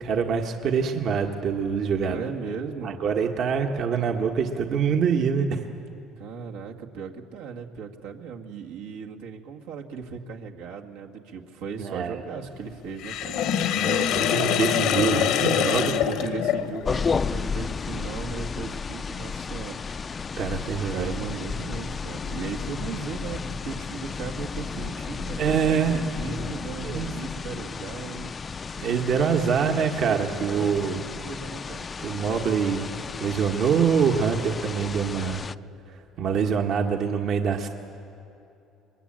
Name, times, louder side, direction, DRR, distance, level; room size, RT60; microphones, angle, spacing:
voice 1, 0.0-2.2 2.8-5.6 11.8-12.2 13.7-15.9 20.4-21.4 25.4-26.0 26.8-27.1 28.8-31.0 32.0-32.9 33.2-35.4 36.2-37.7, right 6 dB, 60° right, 3 dB, 1.6 m, -25 dB
voice 2, 2.1-3.0 6.1-13.4 15.2-19.8 20.9-28.3 29.2-31.9, right 6 dB, 85° right, 0 dB, 1.9 m, -37 dB
Sink (filling or washing), 13.0-17.0, left 9 dB, 75° left, 1.2 m, -24 dB
sound 1, 16.9-35.6, left 5 dB, 35° left, 0.5 m, -33 dB
22.5 x 22.0 x 8.9 m, 2.8 s
supercardioid pair, 80°, 0 cm